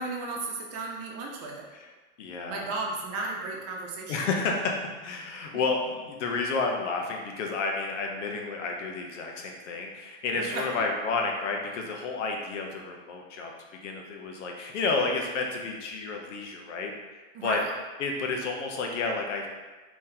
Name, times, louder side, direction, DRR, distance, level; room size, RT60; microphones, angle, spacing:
voice 1, 0.0-1.7 2.5-4.3 10.3-10.9 17.3-17.6, right 3 dB, 45° right, -1 dB, 0.8 m, -34 dB
voice 2, 2.2-2.6 4.1-13.5 13.8-17.6 18.0-19.5, left 4 dB, 85° left, 1 dB, 0.8 m, -31 dB
3.7 x 3.0 x 2.8 m, 1.3 s
supercardioid pair, 135°, 35 cm